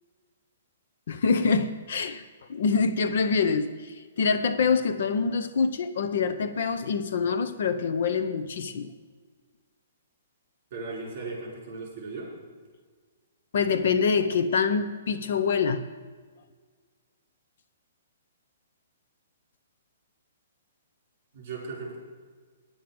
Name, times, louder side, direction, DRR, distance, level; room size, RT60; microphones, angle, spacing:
voice 1, 1.1-2.2 2.5-8.9 13.5-15.8, left 5 dB, 55° left, 10 dB, 0.7 m, -25 dB
voice 2, 10.7-12.3 21.3-22.0, right 3 dB, 35° right, -1 dB, 4.7 m, -37 dB
10.0 x 8.6 x 7.7 m, 1.5 s
hypercardioid pair, 175°, 0 cm